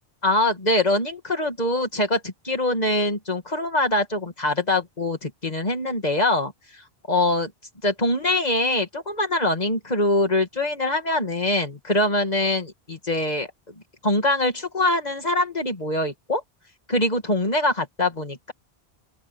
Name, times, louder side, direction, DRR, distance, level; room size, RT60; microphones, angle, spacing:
voice 1, 0.2-6.8 7.1-7.5 7.8-13.5 14.0-16.4 16.9-18.5, left 1 dB, 40° left, 2.5 m, -23 dB
open air
omnidirectional pair, 1.1 m